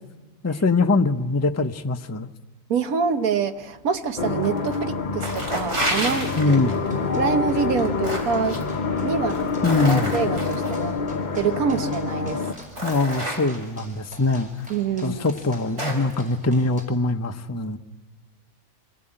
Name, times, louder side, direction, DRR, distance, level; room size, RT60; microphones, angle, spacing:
voice 1, 0.4-2.3 6.4-6.7 9.6-10.1 12.8-14.5 15.0-17.8, left 3 dB, 15° left, 6 dB, 0.6 m, -22 dB
voice 2, 2.7-6.6 7.2-8.6 9.0-9.5 9.8-10.9 11.3-12.4 14.7-15.2, right 6 dB, 80° right, 9 dB, 1.6 m, -26 dB
sound 1, 4.2-12.5, left 4 dB, 35° left, 0.9 m, -27 dB
sound 2, 4.4-4.8 5.1-6.9 7.6-8.6 9.2-10.8 11.8-11.9 12.4-13.8 14.6-14.7 15.2-16.1, right 1 dB, 50° right, 4.6 m, -30 dB
sound 3, 6.3-16.8, left 1 dB, 5° right, 4.9 m, -46 dB
25.5 x 18.5 x 8.9 m, 1.3 s
omnidirectional pair, 1.5 m